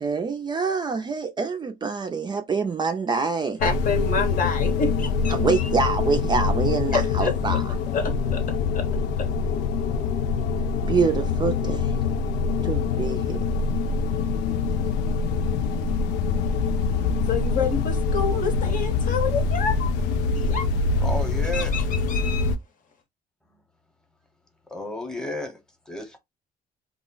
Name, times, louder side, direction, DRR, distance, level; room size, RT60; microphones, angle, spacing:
voice 1, 0.0-3.6 5.3-7.6 10.9-11.9 12.6-13.4, right 5 dB, 25° right, 0.4 m, -25 dB
sound 1, 3.6-22.5, left 4 dB, 90° left, 0.4 m, -24 dB
voice 2, 3.6-5.7 6.9-7.3 7.9-8.4 8.7-8.9 9.2-9.3 17.3-19.9 20.3-20.7 21.5-22.5, left 5 dB, 55° left, 0.8 m, -28 dB
voice 3, 21.0-21.8 24.7-25.6 25.9-26.2, left 1 dB, 5° left, 0.8 m, -32 dB
2.3 x 2.0 x 3.8 m
cardioid pair, 110°, 17 cm